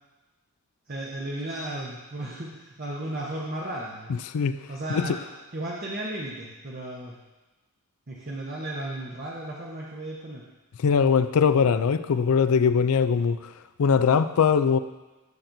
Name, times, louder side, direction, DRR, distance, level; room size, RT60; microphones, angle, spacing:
voice 1, 0.9-4.1 4.7-5.2 5.5-7.2 8.1-10.4, right 1 dB, 45° right, -4 dB, 0.9 m, -34 dB
voice 2, 10.8-13.4 13.8-14.8, left 6 dB, 70° left, 12 dB, 0.4 m, -21 dB
13.0 x 5.9 x 2.6 m, 1.1 s
head